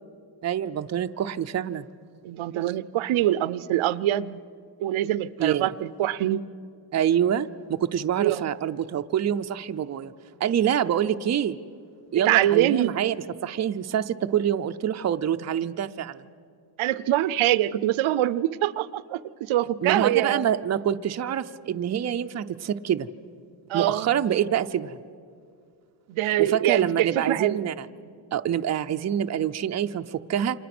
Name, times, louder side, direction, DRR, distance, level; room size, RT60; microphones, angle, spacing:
voice 1, 0.4-1.9 5.4-5.7 6.9-10.1 10.4-11.6 12.1-13.2 13.4-16.2 19.8-23.1 23.7-25.0 26.4-27.9 28.3-30.6, right 9 dB, 35° right, 8 dB, 0.6 m, -26 dB
voice 2, 2.2-4.4 4.8-6.4 8.2-8.5 12.1-12.9 16.8-20.4 23.7-24.1 26.1-27.6, right 13 dB, 85° right, 17 dB, 0.7 m, -24 dB
29.0 x 26.5 x 6.0 m, 2.2 s
wide cardioid pair, 155°, 47 cm